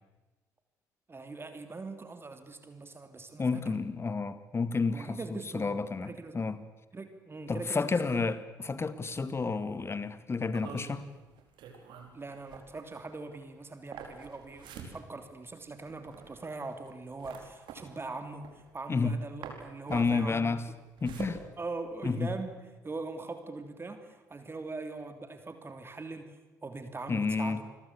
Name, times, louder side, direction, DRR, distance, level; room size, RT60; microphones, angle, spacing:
voice 1, 1.1-3.6 4.9-5.7 6.0-6.4 6.9-8.3 9.1-9.2 12.1-20.5 21.6-22.5 22.8-26.4 26.6-27.6, right 3 dB, 25° right, 8 dB, 3.1 m, -41 dB
voice 2, 3.4-6.6 7.5-11.0 18.9-19.2 19.9-20.6 21.0-21.4 22.0-22.3 27.1-27.6, left 4 dB, 30° left, 14 dB, 2.0 m, -31 dB
sound 1, 10.5-19.1 19.4-22.3, right 6 dB, 60° right, 4.7 m, -47 dB
28.0 x 21.5 x 8.4 m, 1.1 s
figure-of-eight pair, 50°, 9 cm